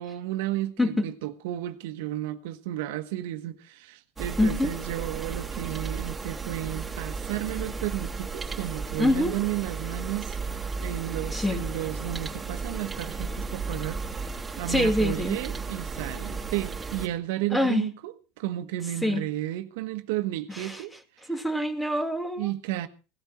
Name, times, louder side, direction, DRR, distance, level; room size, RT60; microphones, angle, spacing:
voice 1, 0.0-10.4 10.8-20.9 22.4-22.9, right 14 dB, 75° right, 1.3 m, -33 dB
sound 1, 4.2-17.1, right 4 dB, 15° right, 3.1 m, -34 dB
voice 2, 4.4-4.7 9.0-9.4 11.3-11.7 14.7-15.4 17.5-17.9 19.0-19.2 20.5-20.8 21.3-22.5, left 1 dB, 5° left, 2.6 m, -25 dB
18.0 x 13.0 x 4.3 m
hypercardioid pair, 100°, 0 cm